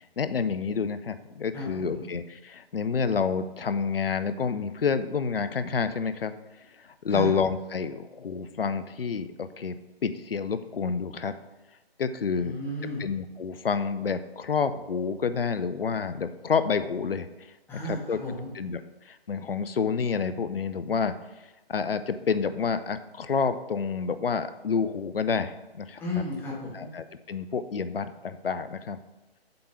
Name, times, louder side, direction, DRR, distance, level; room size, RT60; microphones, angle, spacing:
voice 1, 0.2-6.3 6.8-9.8 10.0-11.3 12.0-12.6 13.0-17.3 17.8-18.2 18.5-18.8 19.1-21.1 21.7-26.0 26.7-29.0, left 5 dB, 65° left, 12 dB, 0.6 m, -28 dB
voice 2, 1.5-2.1 7.1-7.3 12.3-13.1 17.7-18.5 26.0-26.9, left 1 dB, 5° left, -6 dB, 1.4 m, -34 dB
7.7 x 3.7 x 5.6 m, 1.1 s
figure-of-eight pair, 140°, 31 cm